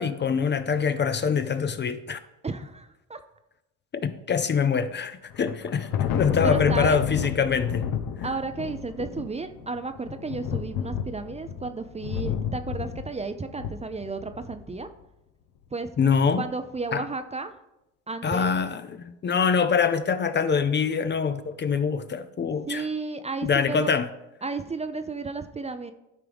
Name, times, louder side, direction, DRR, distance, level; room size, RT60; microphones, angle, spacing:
voice 1, 0.0-2.2 4.0-7.9 16.0-16.4 16.9-17.0 18.2-22.8 23.4-24.1, left 6 dB, 30° left, 0.5 m, -24 dB
voice 2, 2.4-3.2 6.4-7.0 8.2-14.9 15.7-15.9 16.4-17.5 18.1-18.5 22.5-23.9 24.4-25.9, right 3 dB, 20° right, 0.5 m, -33 dB
Thunder, 5.3-14.7, left 8 dB, 70° left, 0.9 m, -31 dB
12.0 x 4.6 x 3.5 m
supercardioid pair, 75°, 36 cm